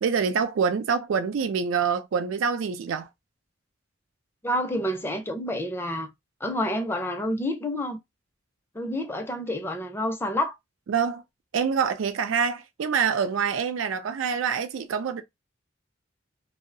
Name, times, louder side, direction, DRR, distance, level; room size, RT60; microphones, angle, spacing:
voice 1, 0.0-3.1 10.9-11.2 11.5-15.2, right 6 dB, 80° right, 0.4 m, -26 dB
voice 2, 4.4-6.1 6.4-8.0 8.7-10.5, left 1 dB, 10° left, 0.4 m, -28 dB
2.6 x 2.0 x 2.5 m
head